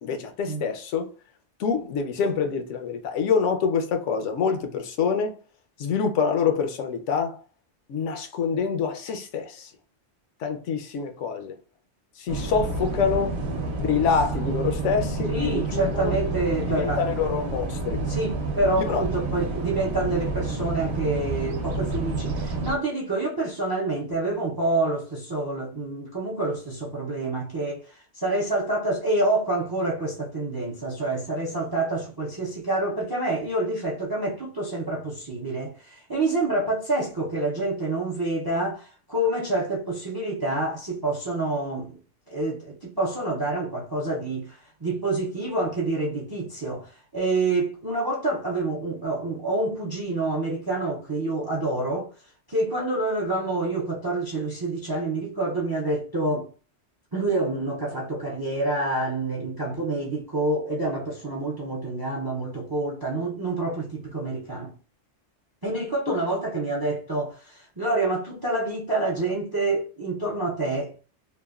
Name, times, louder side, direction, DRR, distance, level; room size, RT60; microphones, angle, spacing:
voice 1, 0.0-1.1 1.6-5.4 5.8-7.4 7.9-9.7 10.4-11.6 12.2-13.3 13.8-16.1 16.7-18.0 18.9-19.0, left 6 dB, 85° left, 0.9 m, -26 dB
sound 1, 12.3-22.8, right 3 dB, 65° right, 0.9 m, -29 dB
voice 2, 15.3-17.1 18.1-42.0 42.3-52.1 52.5-56.5 57.1-64.7 65.6-71.0, right 2 dB, 40° right, 0.3 m, -27 dB
3.1 x 2.1 x 2.3 m
omnidirectional pair, 1.2 m